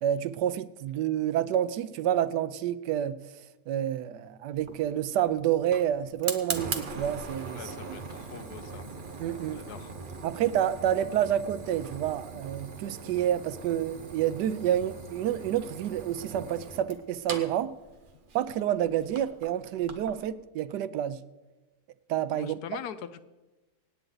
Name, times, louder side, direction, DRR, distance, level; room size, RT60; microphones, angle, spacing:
voice 1, 0.0-3.2 3.7-8.0 9.2-9.7 10.2-17.8 18.3-21.2 22.1-22.6, right 11 dB, 85° right, 1.2 m, -29 dB
Fire, 4.5-20.2, right 4 dB, 35° right, 1.0 m, -41 dB
voice 2, 7.5-8.9 9.5-9.9 22.3-23.2, left 8 dB, 75° left, 1.1 m, -42 dB
25.5 x 9.1 x 3.9 m
omnidirectional pair, 1.8 m